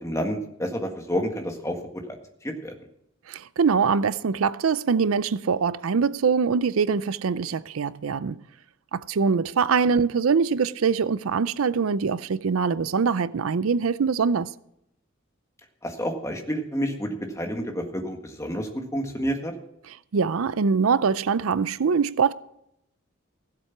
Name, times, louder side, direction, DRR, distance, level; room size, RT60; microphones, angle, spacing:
voice 1, 0.0-1.8 2.0-2.1 2.4-2.7 15.8-19.5, equal, 15° left, 1.7 m, -29 dB
voice 2, 3.3-8.4 8.9-14.5 20.1-22.3, right 5 dB, 90° right, 0.5 m, -23 dB
16.0 x 7.7 x 5.9 m
head